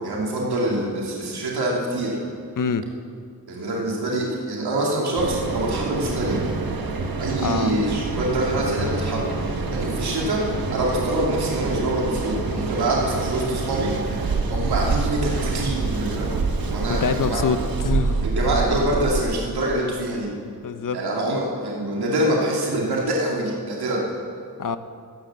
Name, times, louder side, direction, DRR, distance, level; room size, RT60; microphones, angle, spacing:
voice 1, 0.0-2.2 3.5-6.5 7.2-10.4 10.7-16.3 16.7-17.5 18.2-20.3 20.9-24.1, right 1 dB, 90° right, -3 dB, 2.6 m, -25 dB
Mechanical fan, 5.2-19.2, right 4 dB, 65° right, 1.6 m, -26 dB
voice 2, 7.4-7.8 16.9-18.4 20.6-21.0 24.6-24.8, left 6 dB, 55° left, 11 dB, 0.9 m, -25 dB
15.0 x 9.3 x 7.5 m, 2.3 s
cardioid pair, 65°, 37 cm